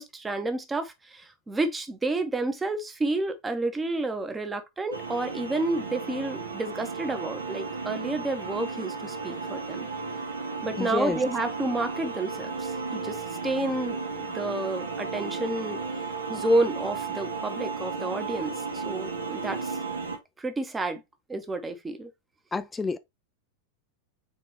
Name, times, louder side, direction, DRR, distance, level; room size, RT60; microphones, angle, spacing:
voice 1, 0.0-9.9 10.6-15.8 16.3-19.8 20.4-21.0 21.3-22.1, right 2 dB, 15° right, 0.8 m, -30 dB
sound 1, 4.9-20.2, right 4 dB, 75° right, 0.9 m, -34 dB
voice 2, 10.8-11.2 22.5-23.0, left 4 dB, 10° left, 0.4 m, -29 dB
4.4 x 3.5 x 3.1 m
figure-of-eight pair, 90°, 0 cm